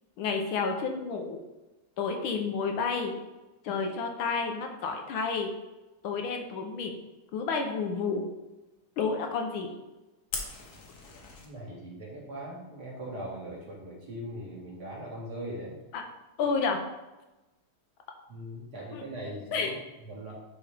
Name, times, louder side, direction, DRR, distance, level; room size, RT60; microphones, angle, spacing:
voice 1, 0.2-1.4 2.0-3.1 3.6-5.5 6.0-6.9 7.3-8.2 9.0-9.7 15.9-16.0 16.4-16.8 18.9-19.0 19.5-19.7, left 5 dB, 75° left, 4 dB, 1.6 m, -30 dB
Fire, 10.3-11.5, left 4 dB, 55° left, 1.4 m, -38 dB
voice 2, 11.4-15.7 18.3-19.7 20.1-20.4, right 1 dB, 50° right, -4 dB, 2.2 m, -40 dB
9.6 x 4.1 x 3.4 m, 1.1 s
omnidirectional pair, 2.3 m